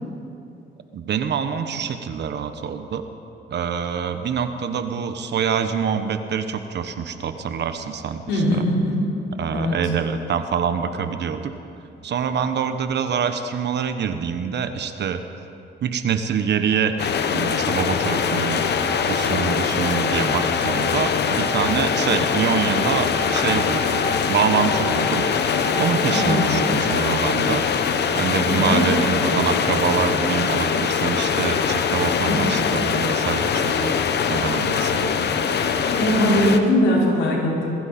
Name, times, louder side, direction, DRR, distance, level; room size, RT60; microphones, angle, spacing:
voice 1, 0.9-3.1 3.5-8.6 9.4-11.5 12.0-15.2 15.8-18.6 19.1-25.3 25.8-27.6 28.1-34.0 34.3-35.4, right 7 dB, 60° right, 8 dB, 1.2 m, -25 dB
voice 2, 8.3-9.0 9.5-9.8 26.1-26.6 28.5-28.8 32.3-32.5 35.9-37.7, left 1 dB, 80° left, -5 dB, 4.9 m, -20 dB
Bowed string instrument, 16.6-27.1, right 2 dB, 15° left, 4.0 m, -35 dB
sound 1, 17.0-36.6, left 6 dB, 60° left, 1.1 m, -22 dB
21.0 x 15.0 x 4.4 m, 2.6 s
cardioid pair, 90°, 20 cm